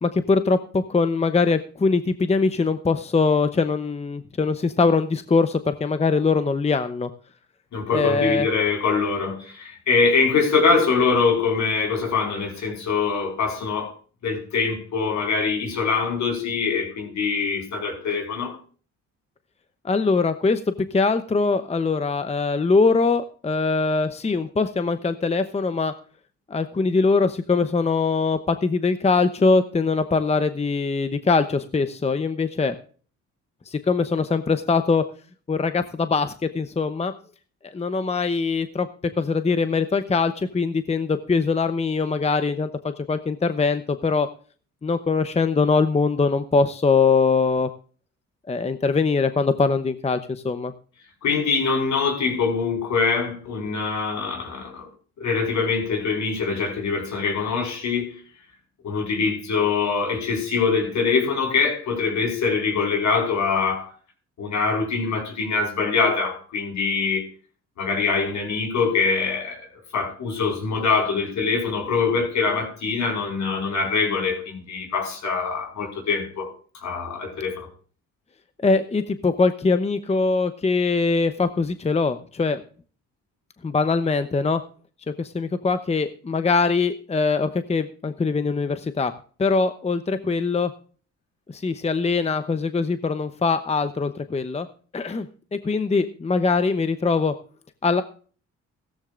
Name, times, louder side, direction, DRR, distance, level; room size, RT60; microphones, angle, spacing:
voice 1, 0.0-7.1 7.9-8.5 19.8-20.6 20.9-25.9 26.5-32.7 33.7-35.0 35.5-37.1 37.6-38.9 39.2-44.3 44.8-47.7 48.5-50.7 78.6-82.6 83.6-84.6 85.2-89.1 89.4-90.7 91.5-94.7 94.9-97.3 97.8-98.0, left 4 dB, 20° left, 10 dB, 0.8 m, -22 dB
voice 2, 7.7-13.9 14.2-18.6 51.2-54.9 55.2-58.1 58.8-63.9 64.4-67.3 67.8-76.5 76.8-77.7, left 5 dB, 70° left, 3 dB, 5.1 m, -23 dB
16.0 x 14.0 x 2.5 m, 0.41 s
cardioid pair, 90°, 30 cm